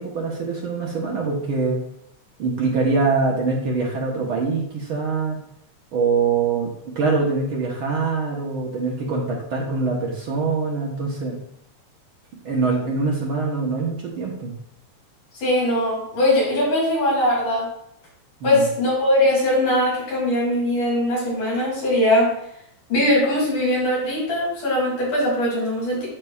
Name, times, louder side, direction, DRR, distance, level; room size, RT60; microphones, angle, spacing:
voice 1, 0.0-1.8 2.4-5.4 5.9-6.7 6.9-11.4 12.4-14.5 18.4-18.6, right 4 dB, 65° right, -2 dB, 1.3 m, -23 dB
voice 2, 15.3-17.7 18.4-22.3 22.9-26.1, left 1 dB, 75° left, -5 dB, 4.3 m, -21 dB
12.0 x 4.1 x 2.4 m, 0.73 s
omnidirectional pair, 3.6 m